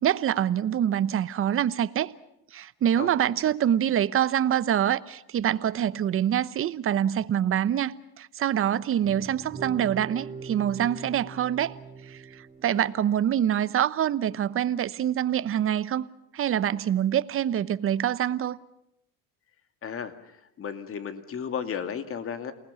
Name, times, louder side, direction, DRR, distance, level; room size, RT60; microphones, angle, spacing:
voice 1, 0.0-2.1 2.5-11.8 12.1-16.1 16.3-18.6, right 10 dB, 40° right, 1.0 m, -25 dB
voice 2, 3.0-3.5 12.7-12.9 19.8-20.3 20.6-22.5, left 7 dB, 40° left, 2.4 m, -34 dB
sound 1, 9.0-13.2, right 5 dB, 20° right, 3.7 m, -42 dB
29.0 x 19.5 x 7.1 m
cardioid pair, 120°, 35 cm